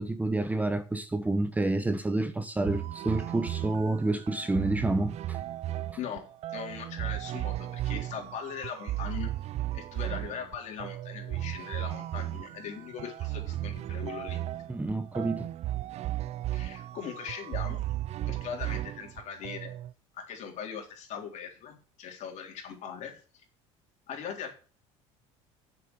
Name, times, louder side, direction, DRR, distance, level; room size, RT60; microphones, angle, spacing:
voice 1, 0.0-5.4 14.7-15.5, right 2 dB, 10° right, 0.9 m, -29 dB
sound 1, 2.6-19.9, right 14 dB, 50° right, 0.5 m, -35 dB
voice 2, 6.5-9.3 9.7-14.4 16.5-17.8 18.3-19.7 20.1-23.4 24.1-24.6, left 7 dB, 55° left, 3.7 m, -40 dB
7.7 x 7.0 x 7.8 m
supercardioid pair, 105°, 14 cm